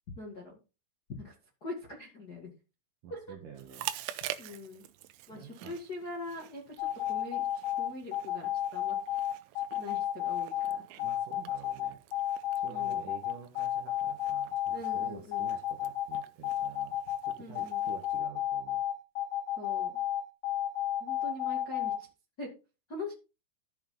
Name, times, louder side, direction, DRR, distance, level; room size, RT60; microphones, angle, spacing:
voice 1, 0.1-0.6 1.2-1.3 1.6-2.5 3.1-3.3 4.4-4.8 5.3-9.0 9.8-10.8 12.7-13.1 14.7-15.5 17.4-17.8 19.6-20.0 21.0-22.1 22.4-22.5 22.9-23.1, left 2 dB, 45° left, -2 dB, 1.3 m, -43 dB
voice 2, 3.0-3.9 5.3-5.8 11.0-12.0 12.6-17.0 17.2-18.8, right 6 dB, 65° right, 2 dB, 2.2 m, -49 dB
Chewing mastication, 3.6-18.2, right 14 dB, 80° right, 3.1 m, -47 dB
sound 1, 6.8-22.0, left 12 dB, 70° left, 3.8 m, -31 dB
14.5 x 5.5 x 3.9 m, 0.31 s
omnidirectional pair, 5.6 m